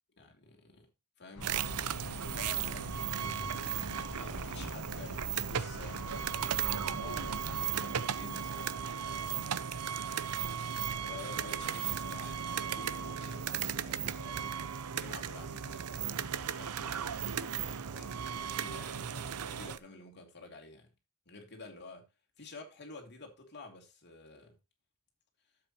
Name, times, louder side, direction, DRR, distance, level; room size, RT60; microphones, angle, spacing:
voice 1, 0.2-0.9 1.2-3.5 3.8-9.5 10.4-14.6 14.9-20.9 21.3-22.1 22.4-24.6, left 3 dB, 50° left, 2.9 m, -50 dB
sound 1, 1.4-7.7, left 2 dB, 85° left, 1.4 m, -44 dB
sound 2, 1.4-19.8, right 8 dB, 90° right, 0.6 m, -36 dB
12.0 x 8.0 x 3.0 m
head